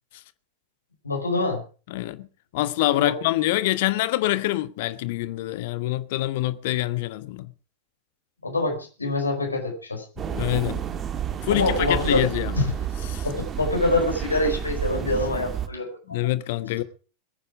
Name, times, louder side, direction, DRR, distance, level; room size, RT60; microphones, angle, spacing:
voice 1, 1.0-1.6 2.9-3.1 8.4-10.0 11.5-12.2 12.5-12.7 13.2-16.2, left 2 dB, 80° left, 4.8 m, -25 dB
voice 2, 1.9-2.3 2.5-7.5 10.3-10.8 11.4-12.6 13.1-13.2 16.1-16.8, left 16 dB, 50° left, 1.2 m, -25 dB
sound 1, 10.2-15.7, right 9 dB, 25° right, 1.8 m, -30 dB
22.0 x 10.0 x 5.0 m
figure-of-eight pair, 90°, 0 cm